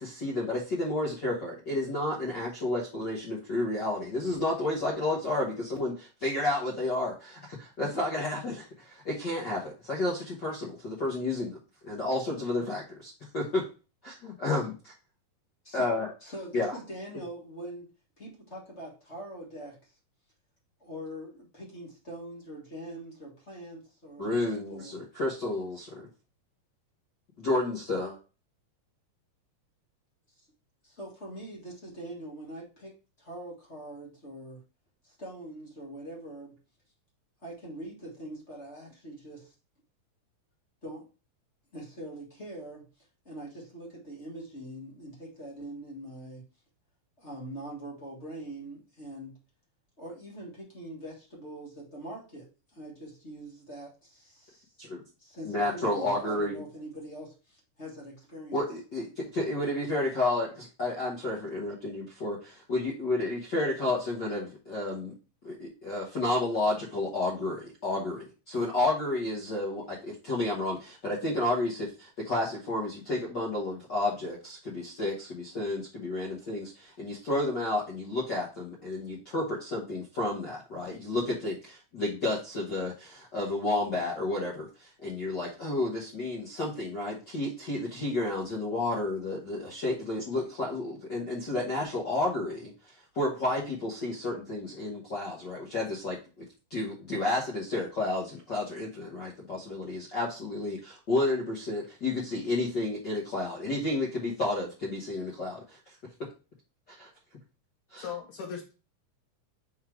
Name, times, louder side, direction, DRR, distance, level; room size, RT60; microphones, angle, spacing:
voice 1, 0.0-11.6 11.8-13.6 14.0-14.9 15.7-16.1 16.5-16.8 24.2-26.1 27.4-28.2 54.8-55.0 55.4-56.6 58.5-59.1 59.3-65.1 65.4-92.7 93.1-96.4 96.7-105.8 106.9-107.1 107.9-108.0, left 2 dB, 55° left, -4 dB, 1.2 m, -31 dB
voice 2, 16.2-17.9 18.2-20.0 20.8-25.0 30.8-34.6 35.0-36.6 37.4-39.5 40.8-41.1 41.7-42.9 43.2-46.4 47.2-49.4 50.0-54.7 55.2-58.6, right 1 dB, 30° left, -3 dB, 1.3 m, -43 dB
voice 3, 108.0-108.7, left 7 dB, 75° left, -1 dB, 2.3 m, -38 dB
5.6 x 3.8 x 4.6 m, 0.33 s
omnidirectional pair, 3.8 m